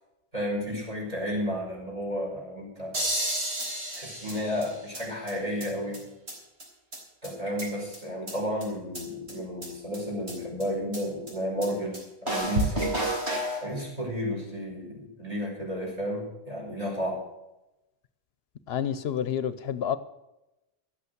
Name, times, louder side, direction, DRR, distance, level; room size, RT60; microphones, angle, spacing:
voice 1, 0.3-2.9 4.0-6.0 7.2-13.0 13.6-17.2, equal, 35° right, 5.2 m, -32 dB
sound 1, 2.9-5.0 5.3-5.4 5.6-5.7 5.9-6.0 6.3-6.4 6.6-6.7 6.9-7.0 7.2-8.0 8.3-8.4 8.6-8.7 8.9-9.0 9.3-9.4 9.6-9.7 9.9-10.0 10.3-10.4 10.6-10.7 10.9-11.0 11.3-11.4 11.6-11.7 11.9-12.0 12.3-13.6, right 1 dB, 90° right, 3.9 m, -30 dB
voice 2, 18.7-20.0, left 9 dB, 75° left, 0.9 m, -29 dB
12.5 x 8.3 x 7.9 m
omnidirectional pair, 1.1 m